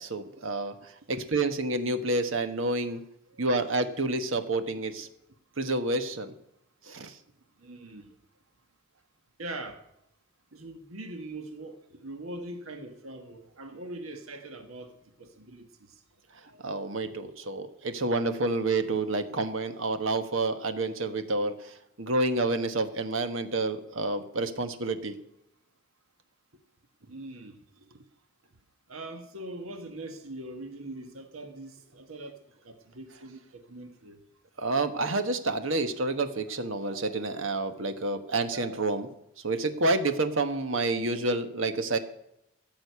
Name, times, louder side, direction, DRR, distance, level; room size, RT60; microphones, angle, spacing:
voice 1, 0.0-3.0 3.4-5.1 5.6-6.3 6.8-7.2 16.5-25.1 34.6-39.1 39.4-42.0, right 2 dB, 70° right, 1.3 m, -29 dB
voice 2, 7.6-8.1 9.4-9.8 10.5-14.9 15.2-15.7 27.1-27.6 28.9-34.2, right 2 dB, 90° right, 1.6 m, -42 dB
15.0 x 6.4 x 9.6 m
head